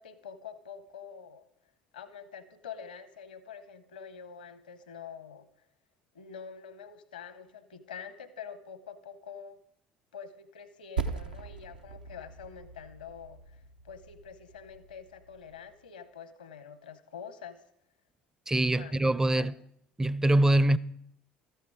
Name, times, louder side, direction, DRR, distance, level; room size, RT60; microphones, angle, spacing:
voice 1, 0.0-1.5 1.9-5.5 6.1-9.6 10.1-17.6 18.7-18.9 19.3-19.5, left 7 dB, 75° left, 0.9 m, -46 dB
Percussion, 11.0-15.8, right 5 dB, 80° right, 0.7 m, -40 dB
voice 2, 18.5-19.5 20.0-20.8, right 1 dB, 10° right, 0.5 m, -24 dB
13.5 x 10.0 x 4.7 m
figure-of-eight pair, 60°, 5 cm